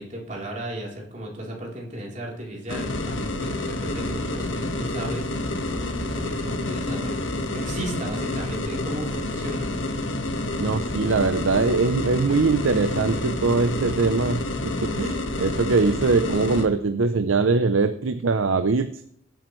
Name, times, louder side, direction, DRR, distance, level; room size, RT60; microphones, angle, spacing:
voice 1, 0.0-5.3 5.7-7.2 7.5-9.8, right 1 dB, 40° right, -2 dB, 3.5 m, -35 dB
sound 1, 2.7-16.7, left 2 dB, 75° left, 1.5 m, -29 dB
voice 2, 10.6-18.9, right 4 dB, 85° right, 10 dB, 0.6 m, -22 dB
17.5 x 8.8 x 3.2 m, 0.70 s
head